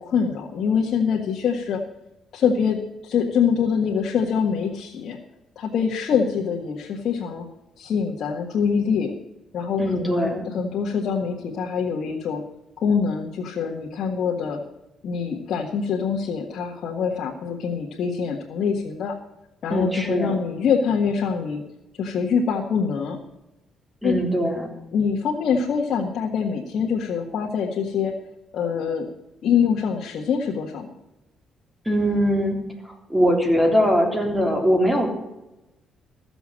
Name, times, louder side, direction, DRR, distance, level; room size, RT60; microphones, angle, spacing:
voice 1, 0.0-1.8 2.3-2.8 3.0-5.2 5.5-7.5 7.8-9.1 9.5-12.4 12.8-14.6 15.0-19.1 19.6-21.6 22.0-23.2 24.0-24.1 24.9-28.1 28.5-29.0 29.4-30.9, left 6 dB, 65° left, -3 dB, 1.6 m, -24 dB
voice 2, 9.8-10.4 19.7-20.4 24.0-24.7 31.8-35.1, equal, 10° right, 2 dB, 3.4 m, -21 dB
14.5 x 7.0 x 7.5 m, 0.95 s
cardioid pair, 90°, 0 cm